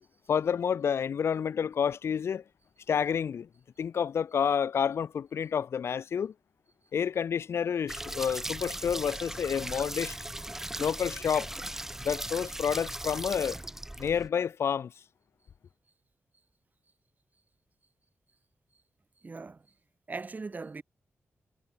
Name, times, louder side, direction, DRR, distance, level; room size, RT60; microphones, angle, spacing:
voice 1, 0.3-2.4 2.9-3.5 3.8-6.3 6.9-10.1 10.8-11.5 12.0-13.6 14.0-14.9, left 7 dB, 75° left, 0.8 m, -29 dB
sound 1, 7.9-14.3, right 1 dB, 10° right, 0.4 m, -38 dB
voice 2, 19.2-19.6 20.1-20.8, right 4 dB, 40° right, 3.1 m, -39 dB
cardioid pair, 80°, 4 cm